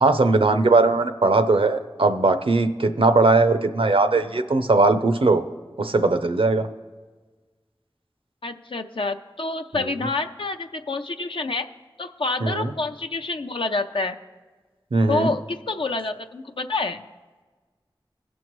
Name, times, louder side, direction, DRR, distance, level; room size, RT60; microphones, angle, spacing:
voice 1, 0.0-5.4 5.8-6.7 9.7-9.9 12.4-12.7 14.9-15.3, right 3 dB, 80° right, 8 dB, 0.6 m, -19 dB
voice 2, 8.4-11.7 12.0-14.2 15.1-17.0, left 3 dB, 70° left, 6 dB, 0.5 m, -27 dB
17.5 x 6.2 x 3.1 m, 1.3 s
wide cardioid pair, 45°, 9 cm